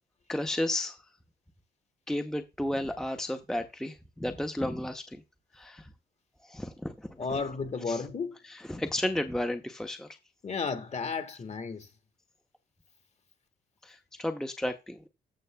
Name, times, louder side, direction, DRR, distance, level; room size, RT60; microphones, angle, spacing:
voice 1, 0.3-1.0 2.1-5.2 5.5-5.9 6.4-7.2 7.9-8.0 8.4-10.2 13.8-15.1, left 1 dB, 5° left, 0.7 m, -33 dB
voice 2, 7.2-8.4 10.4-11.9, left 4 dB, 35° left, 1.5 m, -33 dB
13.5 x 6.3 x 2.2 m
cardioid pair, 90°, 20 cm